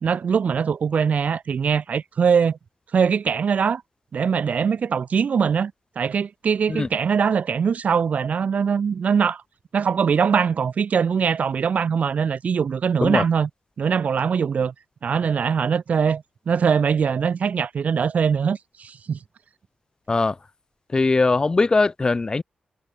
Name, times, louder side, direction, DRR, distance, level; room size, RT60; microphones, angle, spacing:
voice 1, 0.0-2.6 2.9-3.8 4.1-9.4 9.7-13.5 13.8-14.7 15.0-19.2, right 6 dB, 60° right, 1.3 m, -22 dB
voice 2, 20.9-22.4, left 3 dB, 30° left, 2.3 m, -20 dB
wide cardioid pair, 130°, 3 cm